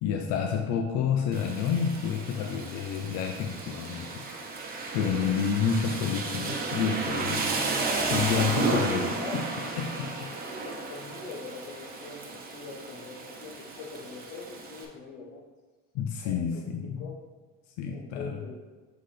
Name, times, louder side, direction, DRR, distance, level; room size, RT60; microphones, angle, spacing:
voice 1, 0.0-4.2 4.9-7.5 8.1-10.3 15.9-17.1 17.8-18.4, left 7 dB, 70° left, 3 dB, 0.6 m, -29 dB
Rain, 1.3-14.8, right 3 dB, 30° right, 0.9 m, -33 dB
voice 2, 8.6-9.5 10.4-15.4 16.2-17.2 17.9-18.6, left 4 dB, 90° left, 0 dB, 1.2 m, -43 dB
7.8 x 3.9 x 3.3 m, 1.3 s
cardioid pair, 150°, 29 cm